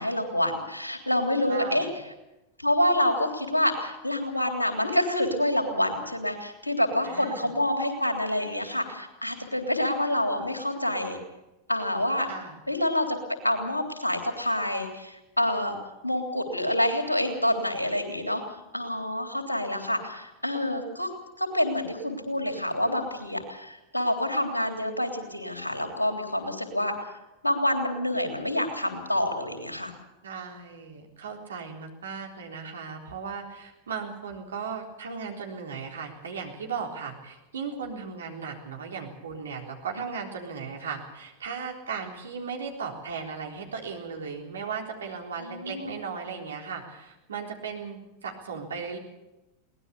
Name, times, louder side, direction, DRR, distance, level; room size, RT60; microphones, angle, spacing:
voice 1, 0.0-1.9 2.6-11.2 11.7-12.3 12.7-13.2 13.4-15.8 16.0-18.4 18.7-21.1 21.4-27.1 27.4-29.9 45.4-45.9, left 1 dB, 85° left, 4 dB, 3.4 m, -27 dB
voice 2, 1.5-1.9 7.0-7.5 12.3-12.6 30.2-49.0, right 5 dB, 65° right, 1 dB, 3.8 m, -37 dB
22.5 x 19.0 x 6.9 m, 0.97 s
figure-of-eight pair, 90°, 0 cm